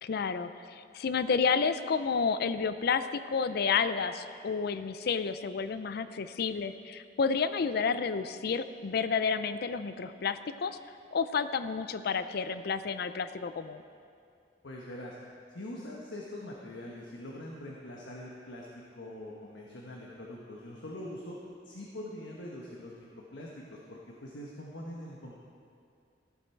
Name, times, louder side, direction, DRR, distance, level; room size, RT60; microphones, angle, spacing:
voice 1, 0.0-10.8 11.1-13.8, left 5 dB, 60° left, 12 dB, 0.4 m, -30 dB
voice 2, 14.6-15.2 15.5-18.7 18.9-21.4 21.6-25.4, left 1 dB, 85° left, -3 dB, 1.2 m, -43 dB
15.0 x 7.3 x 4.5 m, 2.4 s
head